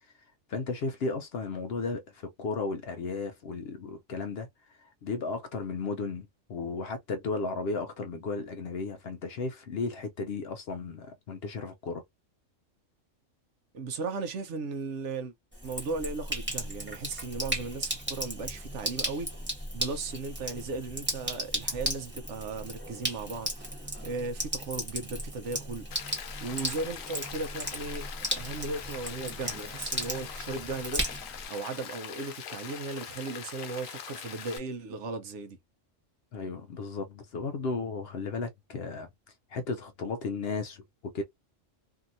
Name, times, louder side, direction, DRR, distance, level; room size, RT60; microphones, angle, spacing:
voice 1, 0.5-12.0 36.3-39.1 39.5-41.2, left 4 dB, 60° left, 0.7 m, -34 dB
voice 2, 13.7-15.3 15.6-19.3 19.7-25.9 26.4-28.1 28.3-31.0 31.5-35.6, right 3 dB, 65° right, 1.0 m, -36 dB
Sink (filling or washing), 15.5-31.5, equal, 10° right, 1.2 m, -36 dB
Rain, 25.9-34.6, left 8 dB, 85° left, 1.1 m, -42 dB
2.8 x 2.7 x 2.5 m
omnidirectional pair, 1.4 m